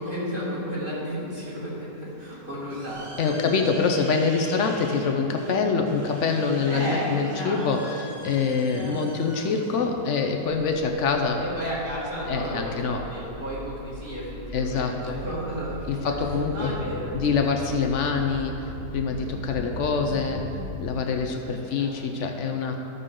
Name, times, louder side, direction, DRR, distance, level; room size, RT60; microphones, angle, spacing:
voice 1, 0.0-3.9 4.6-4.7 6.7-8.0 8.7-9.4 11.4-16.1 16.5-18.5 19.1-19.5 20.1-20.3 21.5-21.9 22.2-22.4, equal, 30° right, -8 dB, 2.4 m, -34 dB
sound 1, 2.1-11.2, right 1 dB, 50° right, 2.0 m, -45 dB
voice 2, 3.2-11.5 12.3-13.0 14.5-15.2 15.9-16.8 17.1-18.5 18.9-20.4 20.8-22.8, left 5 dB, 70° left, 4 dB, 0.7 m, -25 dB
sound 2, 11.4-20.9, left 1 dB, 15° left, 0.7 m, -39 dB
12.0 x 6.7 x 3.7 m, 2.8 s
omnidirectional pair, 1.9 m